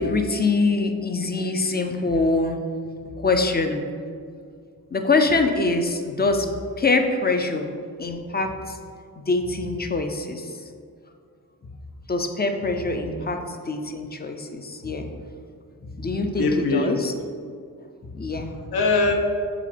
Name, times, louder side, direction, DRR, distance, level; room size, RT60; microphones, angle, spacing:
voice 1, 0.0-2.9 3.2-3.8 4.9-7.7 8.0-8.8 9.2-10.5 12.1-15.2 15.9-17.1 18.1-18.5, left 3 dB, 25° left, 5 dB, 0.4 m, -24 dB
voice 2, 16.1-17.0 18.4-19.1, left 3 dB, 80° left, 3 dB, 0.9 m, -23 dB
7.5 x 3.8 x 5.0 m, 2.2 s
wide cardioid pair, 170°, 37 cm